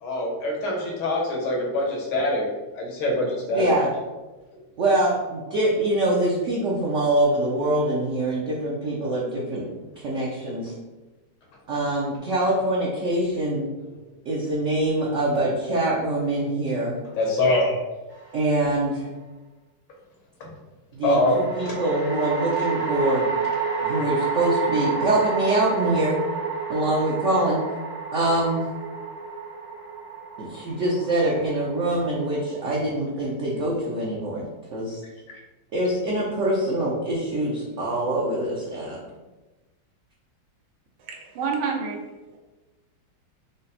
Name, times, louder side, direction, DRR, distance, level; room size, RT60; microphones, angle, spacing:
voice 1, 0.0-2.4 2.7-3.7 17.1-17.8 20.4-20.5 21.0-21.4 21.6-21.8, left 1 dB, 80° left, -1 dB, 1.9 m, -24 dB
voice 2, 3.5-3.9 4.8-9.7 10.0-10.7 11.7-13.7 14.3-16.9 18.3-19.1 20.9-23.3 23.8-26.2 26.7-27.6 28.1-28.7 30.4-34.4 34.7-35.0 35.7-39.0, right 1 dB, 70° right, -4 dB, 0.7 m, -24 dB
sound 1, 18.1-18.8 21.2-32.6, right 5 dB, 30° right, 0.4 m, -29 dB
voice 3, 41.1-42.0, right 5 dB, 90° right, 0 dB, 1.7 m, -28 dB
5.2 x 2.1 x 4.1 m, 1.1 s
omnidirectional pair, 2.2 m